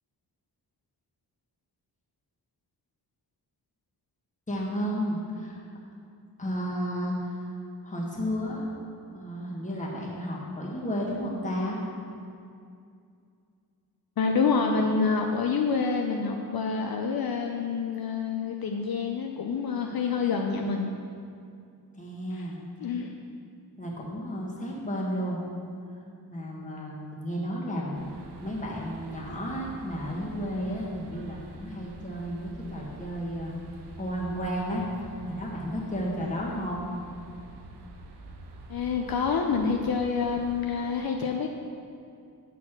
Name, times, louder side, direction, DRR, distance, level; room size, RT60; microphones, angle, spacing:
voice 1, 4.5-5.6 6.4-7.5 7.8-8.6 9.1-11.8 21.9-22.6 23.8-25.4 26.3-28.1 28.4-33.5 34.0-34.8 35.2-36.8, equal, 20° left, -4 dB, 1.5 m, -32 dB
voice 2, 14.2-20.9 22.3-22.5 22.8-23.1 38.7-41.5, left 5 dB, 65° left, 2 dB, 0.5 m, -27 dB
sound 1, 27.9-40.6, right 3 dB, 90° right, 0.7 m, -46 dB
8.2 x 4.2 x 6.0 m, 2.4 s
wide cardioid pair, 125°, 39 cm